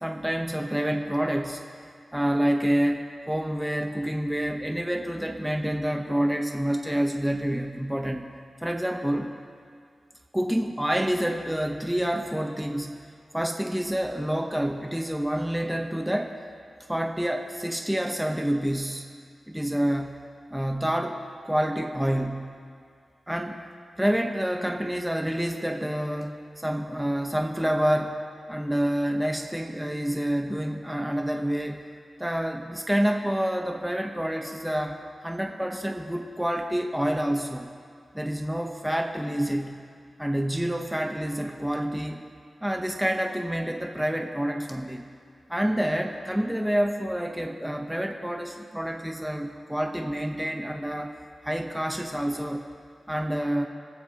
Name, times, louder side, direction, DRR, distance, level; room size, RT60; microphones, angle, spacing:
voice 1, 0.0-1.6 2.1-8.3 8.6-9.3 10.3-12.9 13.3-16.4 16.9-19.1 19.5-20.1 20.5-21.2 21.4-22.5 23.3-23.6 24.0-28.2 28.5-31.8 32.2-37.7 38.1-39.8 40.2-42.2 42.6-45.0 45.5-51.1 51.4-52.7 53.1-53.7, equal, 5° right, 3 dB, 0.9 m, -28 dB
26.0 x 14.5 x 2.9 m, 2.2 s
wide cardioid pair, 80°, 0 cm